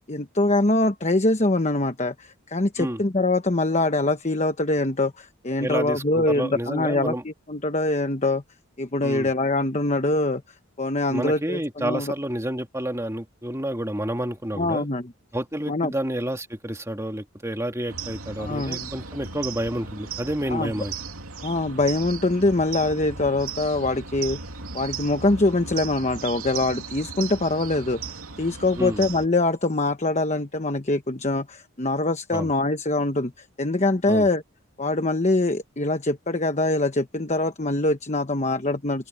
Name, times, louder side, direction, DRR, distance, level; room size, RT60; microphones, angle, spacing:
voice 1, 0.1-8.4 8.8-10.4 10.8-12.1 14.5-15.1 15.7-15.9 18.4-18.9 20.5-20.7 21.4-24.4 24.7-34.4 34.8-39.1, left 2 dB, 30° left, 1.0 m, -24 dB
voice 2, 5.6-7.2 9.0-9.3 11.1-14.9 15.3-20.9 28.8-29.0 32.3-32.5 34.1-34.3, right 1 dB, 15° right, 2.2 m, -29 dB
sound 1, 17.9-29.3, right 5 dB, 80° right, 2.9 m, -36 dB
open air
head